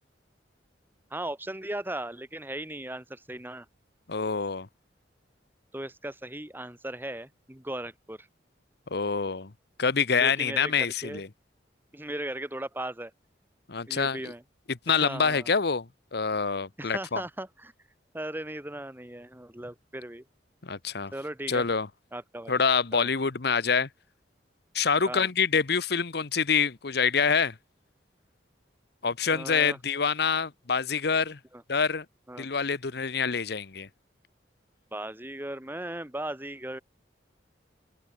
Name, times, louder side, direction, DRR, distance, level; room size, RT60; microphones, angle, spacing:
voice 1, 1.1-3.7 5.7-8.3 10.2-11.2 11.9-13.1 13.9-14.4 14.9-15.5 16.8-17.7 18.1-20.2 21.1-21.6 22.1-22.5 22.9-23.1 25.1-25.3 29.3-29.8 31.5-31.6 32.3-32.5 34.9-36.8, right 1 dB, 10° right, 2.0 m, -37 dB
voice 2, 4.1-4.7 8.9-9.5 9.8-11.3 13.7-14.2 14.9-15.9 16.1-17.2 20.6-21.1 21.5-21.9 22.5-23.9 24.7-27.5 29.0-31.4 31.7-32.0 32.4-33.9, left 5 dB, 60° left, 1.0 m, -26 dB
open air
head